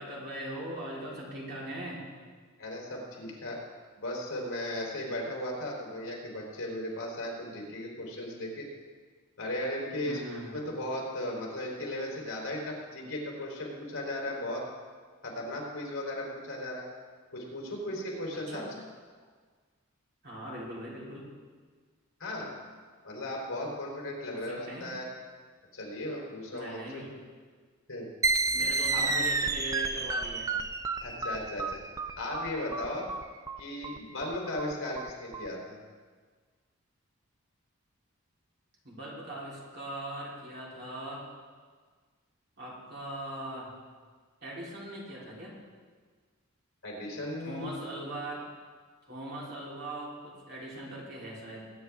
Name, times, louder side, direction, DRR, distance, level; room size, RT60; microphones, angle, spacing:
voice 1, 0.0-2.0 10.0-10.5 18.5-18.7 20.2-21.3 22.4-22.6 24.3-24.9 26.5-27.1 28.5-30.5 32.7-33.1 38.8-41.3 42.6-43.7 44.4-45.5 47.4-48.5 49.1-51.7, right 1 dB, 50° right, -5 dB, 3.6 m, -40 dB
voice 2, 2.6-3.6 4.0-8.7 9.4-10.2 10.5-14.6 15.2-16.9 17.3-18.6 22.2-22.5 23.0-25.1 25.7-27.0 27.9-28.1 28.9-29.2 31.0-31.8 32.2-33.0 33.6-35.8 46.8-47.7, left 1 dB, 70° left, -2 dB, 3.5 m, -36 dB
sound 1, 28.2-35.5, right 3 dB, 15° right, 0.3 m, -31 dB
21.0 x 9.3 x 3.5 m, 1.5 s
head